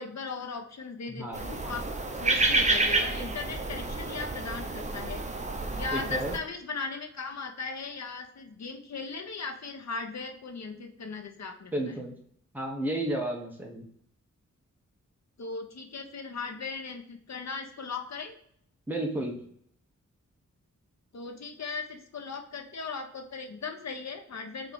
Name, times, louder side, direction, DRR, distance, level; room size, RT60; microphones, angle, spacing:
voice 1, 0.0-1.9 2.1-5.2 5.8-11.7 15.4-18.3 21.1-24.7, left 4 dB, 60° left, 5 dB, 1.0 m, -38 dB
voice 2, 1.1-1.4 5.9-6.3 11.7-12.1 12.5-13.9 18.9-19.4, right 1 dB, 5° right, 0 dB, 1.2 m, -32 dB
sound 1, 1.3-6.4, right 2 dB, 25° right, 0.8 m, -29 dB
4.5 x 3.8 x 5.4 m, 0.66 s
wide cardioid pair, 95°, 30 cm